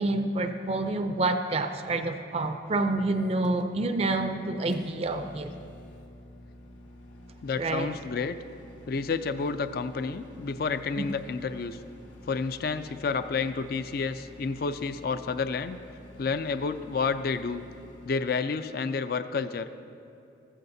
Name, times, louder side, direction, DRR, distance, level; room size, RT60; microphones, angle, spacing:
voice 1, 0.0-5.5 7.6-7.9 11.0-11.1, right 2 dB, 30° right, 7 dB, 0.4 m, -28 dB
Microwave oven, 3.1-18.2, left 1 dB, 80° left, 1.2 m, -50 dB
voice 2, 7.4-8.4 8.9-11.8 12.3-15.8 16.2-17.6 18.0-19.8, left 4 dB, 50° left, 11 dB, 0.4 m, -30 dB
15.0 x 13.5 x 2.7 m, 2.6 s
head